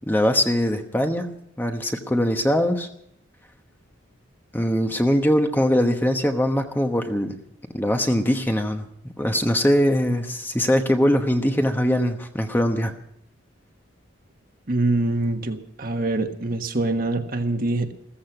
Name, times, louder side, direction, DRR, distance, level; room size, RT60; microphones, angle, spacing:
voice 1, 0.1-1.3 1.6-2.9 4.5-7.4 7.7-8.9 9.2-12.9, equal, 10° left, 5 dB, 1.0 m, -21 dB
voice 2, 14.7-17.9, right 2 dB, 45° right, 5 dB, 1.4 m, -24 dB
15.5 x 14.5 x 5.9 m, 0.69 s
head